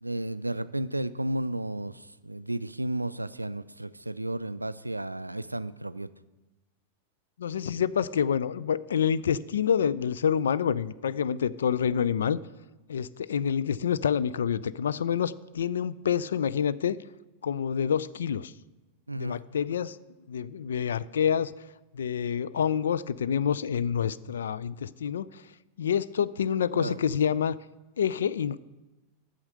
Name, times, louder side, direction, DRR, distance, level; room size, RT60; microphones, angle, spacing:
voice 1, 0.0-6.1 19.1-19.4 26.7-27.0, right 1 dB, 85° right, 15 dB, 0.3 m, -33 dB
voice 2, 7.4-12.4 12.9-17.0 17.4-18.5 19.2-20.0 20.3-21.5 21.9-25.4 25.8-27.6 28.0-28.6, left 8 dB, 65° left, 18 dB, 0.3 m, -27 dB
8.8 x 6.5 x 7.7 m, 1.1 s
figure-of-eight pair, 90°, 0 cm